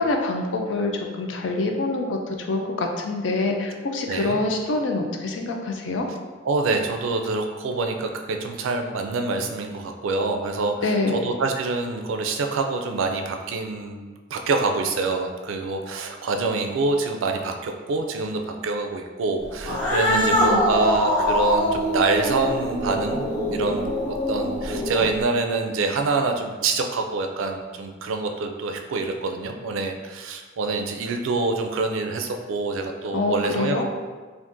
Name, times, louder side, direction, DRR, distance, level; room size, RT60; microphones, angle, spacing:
voice 1, 0.0-6.1 10.8-11.2 20.1-20.6 33.1-33.8, left 2 dB, 70° left, 2 dB, 0.4 m, -25 dB
voice 2, 6.4-23.2 23.5-33.8, right 3 dB, 85° right, 4 dB, 0.4 m, -26 dB
Cat, 19.6-25.2, equal, 20° left, 0.9 m, -23 dB
2.5 x 2.5 x 3.6 m, 1.4 s
head